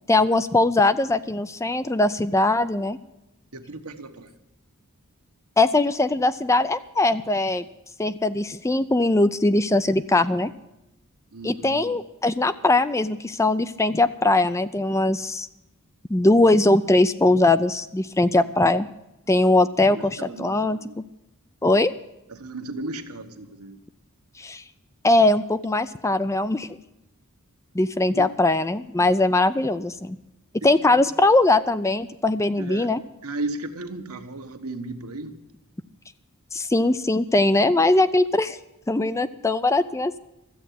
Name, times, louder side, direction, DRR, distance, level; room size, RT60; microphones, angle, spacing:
voice 1, 0.1-3.0 5.6-7.6 8.0-10.5 11.4-15.5 16.1-18.9 19.3-20.8 21.6-21.9 24.4-24.6 25.0-26.8 27.7-30.2 30.6-33.0 36.5-38.6 38.9-40.2, left 2 dB, 15° left, 13 dB, 0.4 m, -21 dB
voice 2, 3.5-4.4 11.3-11.9 19.3-19.4 19.9-21.0 22.3-23.8 28.1-28.3 30.8-31.1 32.6-33.0 33.2-35.4, right 2 dB, 80° right, 5 dB, 1.4 m, -35 dB
13.5 x 8.1 x 10.0 m, 0.89 s
head